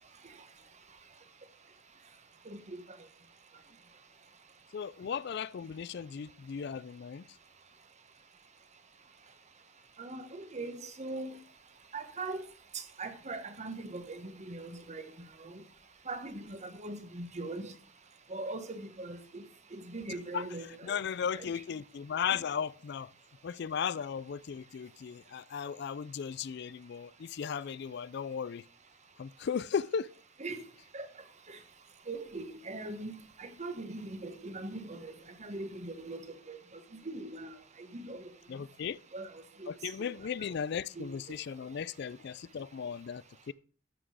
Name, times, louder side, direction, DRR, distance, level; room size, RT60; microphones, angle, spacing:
voice 1, 4.7-7.3 20.3-23.1 23.4-28.6 29.2-30.1 38.5-39.0 39.7-43.5, left 7 dB, 60° left, 0.4 m, -36 dB
voice 2, 10.0-11.3 11.9-12.4 12.7-15.0 15.4-15.5 16.1-17.7 18.3-19.4 19.7-21.0 21.3-21.5 30.4-30.6 30.9-31.1 31.5-31.6 32.1-35.1 35.4-36.2 36.5-36.6 37.0-37.5 37.9-38.3 39.1-39.3 39.6-39.7 41.0-41.1, right 2 dB, 35° right, 1.2 m, -40 dB
13.0 x 6.0 x 4.8 m
head